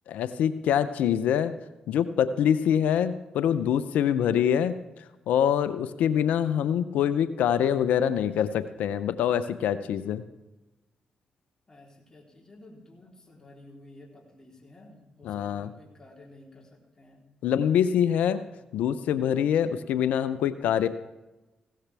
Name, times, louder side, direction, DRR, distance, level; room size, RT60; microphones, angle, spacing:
voice 1, 0.1-1.5 1.9-4.8 5.3-10.2 15.2-15.7 17.4-18.4 18.7-20.9, left 9 dB, 80° left, 13 dB, 0.6 m, -25 dB
voice 2, 11.7-17.2 18.3-18.6 19.6-19.8, left 2 dB, 25° left, -1 dB, 3.5 m, -52 dB
16.5 x 13.0 x 3.4 m, 1.0 s
supercardioid pair, 50°, 3 cm